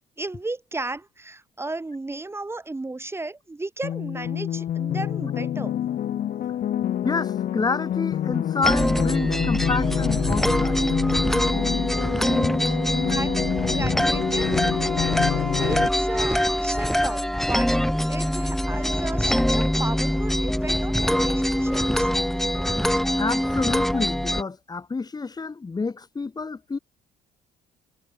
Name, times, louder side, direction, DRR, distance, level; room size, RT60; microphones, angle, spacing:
voice 1, 0.2-5.8 12.6-12.8 13.1-14.8 15.2-22.1, right 2 dB, 15° right, 2.7 m, -34 dB
sound 1, 3.8-15.9, left 10 dB, 55° left, 1.7 m, -28 dB
voice 2, 7.0-10.8 23.2-26.8, left 4 dB, 25° left, 5.7 m, -28 dB
sound 2, 8.6-24.4, equal, ahead, 1.4 m, -23 dB
cardioid pair, 110°, 17 cm